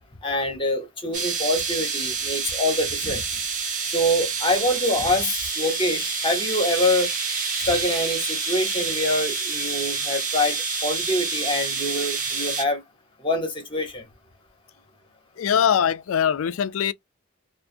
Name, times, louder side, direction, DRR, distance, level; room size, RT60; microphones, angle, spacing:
voice 1, 0.2-3.4 3.9-7.1 7.6-12.8 13.2-14.1, left 1 dB, 25° left, 1.0 m, -25 dB
sound 1, 1.1-12.6, right 4 dB, 40° right, 0.8 m, -28 dB
voice 2, 15.4-16.9, left 8 dB, 75° left, 0.4 m, -22 dB
2.5 x 2.3 x 2.5 m
head